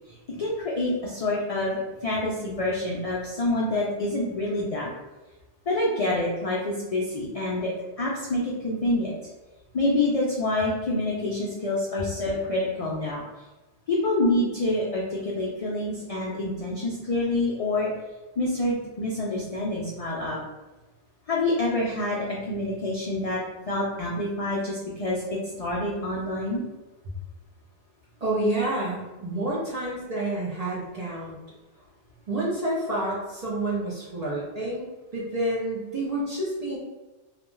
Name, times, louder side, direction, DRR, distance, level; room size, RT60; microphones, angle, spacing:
voice 1, 0.1-4.9 5.7-7.7 8.0-9.1 9.7-13.2 13.9-17.9 18.4-20.4 21.3-23.4 23.7-26.6, left 2 dB, 70° left, -4 dB, 0.3 m, -27 dB
voice 2, 28.2-31.4 32.3-36.8, right 1 dB, 45° right, -5 dB, 0.6 m, -29 dB
2.4 x 2.2 x 3.0 m, 1.1 s
omnidirectional pair, 1.2 m